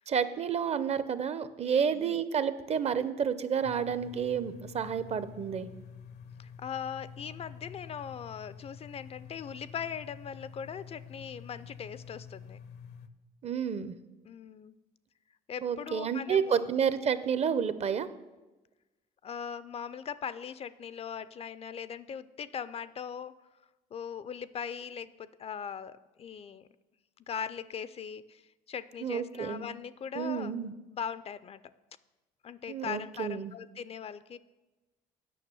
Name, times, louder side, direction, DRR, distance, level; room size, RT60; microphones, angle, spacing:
voice 1, 0.1-5.7 13.4-13.9 15.6-18.1 29.0-29.7 30.1-30.7 32.7-33.5, right 7 dB, 40° right, 14 dB, 0.6 m, -30 dB
voice 2, 1.7-2.2 6.4-12.6 14.3-14.8 15.5-16.7 19.2-23.3 23.9-26.7 27.3-30.5 30.9-31.6 32.4-34.4, left 7 dB, 35° left, 15 dB, 0.4 m, -40 dB
sound 1, 3.6-13.1, left 7 dB, 75° left, 0.7 m, -48 dB
9.3 x 6.0 x 6.9 m, 1.1 s
cardioid pair, 110°, 17 cm